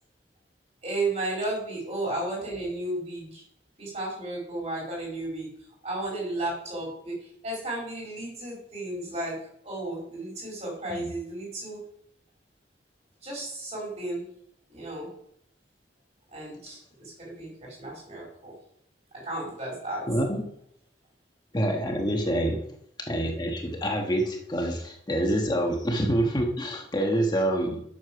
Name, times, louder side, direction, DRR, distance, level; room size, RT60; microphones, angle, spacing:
voice 1, 0.8-3.4 3.8-5.5 5.8-9.4 9.6-11.8 13.2-14.2 14.7-15.1 16.3-18.5 19.1-20.0, right 2 dB, 40° right, -4 dB, 4.9 m, -33 dB
voice 2, 20.1-20.4 21.5-22.6 23.1-27.8, right 1 dB, 25° left, 2 dB, 1.4 m, -26 dB
8.1 x 7.1 x 5.8 m, 0.70 s
head